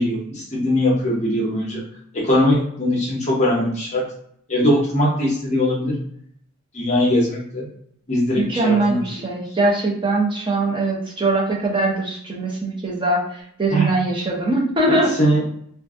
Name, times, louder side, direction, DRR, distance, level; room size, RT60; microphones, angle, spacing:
voice 1, 0.0-1.8 2.2-4.0 4.5-5.9 6.7-7.6 8.1-9.0 13.7-13.9 14.9-15.4, left 1 dB, 30° left, -4 dB, 0.7 m, -20 dB
voice 2, 8.4-15.1, right 2 dB, 25° right, -2 dB, 0.6 m, -21 dB
2.5 x 2.4 x 2.4 m, 0.66 s
head